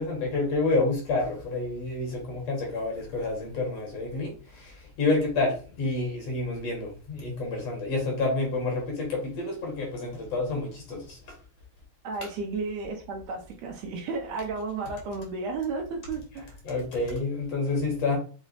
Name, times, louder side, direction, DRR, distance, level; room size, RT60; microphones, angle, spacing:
voice 1, 0.0-11.2 16.7-18.2, left 3 dB, 60° left, 2.4 m, -29 dB
voice 2, 12.0-16.6, right 4 dB, 75° right, 1.8 m, -33 dB
6.0 x 2.1 x 4.0 m
omnidirectional pair, 3.4 m